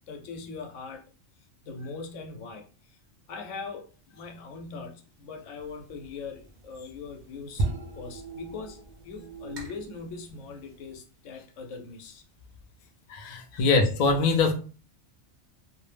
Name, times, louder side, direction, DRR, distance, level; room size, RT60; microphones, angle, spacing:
voice 1, 0.1-1.1 1.7-2.7 3.3-7.7 8.0-12.2 13.5-13.6, left 4 dB, 90° left, 0.9 m, -41 dB
sound 1, 5.6-10.9, right 2 dB, 50° right, 0.6 m, -36 dB
voice 2, 13.1-14.5, left 3 dB, 70° left, 0.4 m, -23 dB
2.3 x 2.0 x 3.2 m
omnidirectional pair, 1.2 m